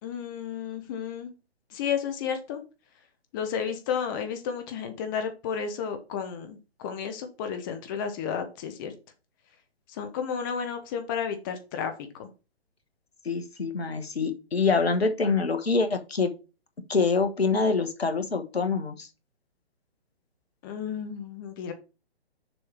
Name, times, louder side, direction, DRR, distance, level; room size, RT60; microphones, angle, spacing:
voice 1, 0.0-1.3 1.7-2.6 3.3-8.9 9.9-11.9 12.2-12.3 20.6-21.7, left 7 dB, 20° left, 7 dB, 0.7 m, -32 dB
voice 2, 13.2-16.3 16.9-19.1, left 4 dB, 70° left, 8 dB, 1.3 m, -25 dB
6.8 x 3.3 x 5.7 m, 0.31 s
figure-of-eight pair, 130°, 32 cm